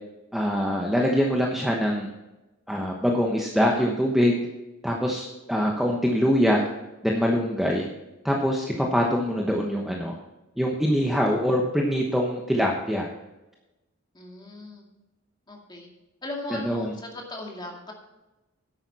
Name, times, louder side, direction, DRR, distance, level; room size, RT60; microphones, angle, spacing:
voice 1, 0.3-2.1 2.7-4.4 4.8-6.6 7.0-7.9 8.2-10.1 10.6-13.1 16.7-16.9, equal, ahead, -1 dB, 1.0 m, -24 dB
voice 2, 14.1-14.8 15.5-15.9 16.2-17.9, left 1 dB, 20° left, 0 dB, 2.2 m, -38 dB
11.0 x 8.8 x 4.2 m, 1.0 s
head